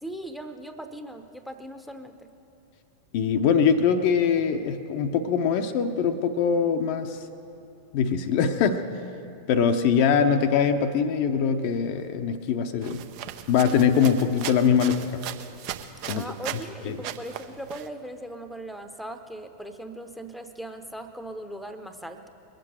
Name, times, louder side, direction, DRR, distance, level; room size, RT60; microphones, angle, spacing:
voice 1, 0.0-2.3 16.1-22.3, right 1 dB, ahead, 8 dB, 0.9 m, -39 dB
voice 2, 3.1-7.2 7.9-8.9 9.5-13.0 13.5-15.2 16.1-16.2 16.8-16.9, left 7 dB, 45° left, 6 dB, 0.7 m, -22 dB
sound 1, 12.8-16.7 17.0-17.9, right 11 dB, 45° right, 0.7 m, -37 dB
21.5 x 7.7 x 7.8 m, 2.8 s
figure-of-eight pair, 90°, 0 cm